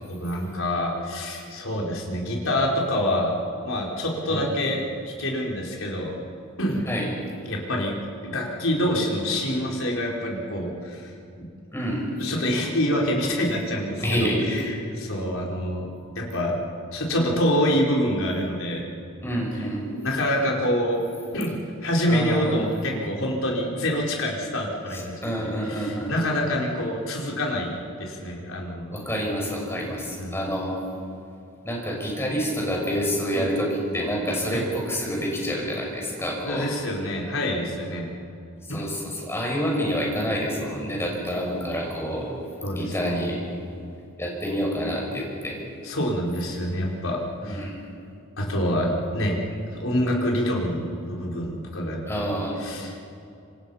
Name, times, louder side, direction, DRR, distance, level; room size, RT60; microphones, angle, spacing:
voice 1, 0.1-3.3 3.6-4.8 5.0-6.1 6.6-6.8 7.5-8.0 8.2-11.1 12.2-14.6 15.0-16.6 16.9-18.8 20.0-21.0 21.3-25.1 25.4-29.0 30.2-30.5 33.3-33.5 34.5-34.7 36.4-38.1 38.7-38.8 42.6-43.3 45.8-47.7 48.4-49.4 49.7-52.2 52.6-53.0, equal, 65° left, -2 dB, 4.6 m, -26 dB
voice 2, 11.7-12.1 14.0-14.6 19.2-19.8 22.1-22.6 24.9-26.1 28.9-30.8 31.6-36.7 38.7-42.3 42.7-43.4 44.2-45.6 47.4-47.8 52.0-52.5, equal, 10° left, -1 dB, 6.3 m, -28 dB
26.5 x 26.0 x 5.8 m, 2.6 s
head